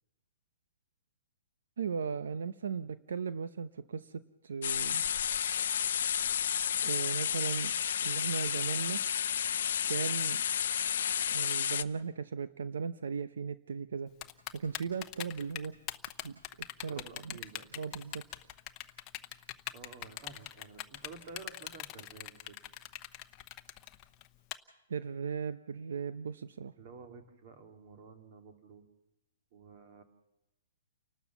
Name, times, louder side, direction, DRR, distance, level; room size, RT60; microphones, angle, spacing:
voice 1, 1.8-5.0 6.8-7.7 8.0-9.0 9.9-10.4 11.3-14.1 14.5-15.8 16.2-16.4 16.8-17.4 17.8-18.2 24.9-26.7, right 6 dB, 80° right, 13 dB, 0.8 m, -37 dB
sound 1, 4.6-11.8, left 9 dB, 65° left, 0.7 m, -31 dB
Typing, 14.2-24.5, left 13 dB, 25° left, 0.9 m, -41 dB
voice 2, 16.9-18.0 19.7-22.6 26.8-28.9 29.5-30.0, right 4 dB, 40° right, 6 dB, 2.6 m, -51 dB
29.5 x 12.5 x 7.2 m, 0.96 s
hypercardioid pair, 160°, 0 cm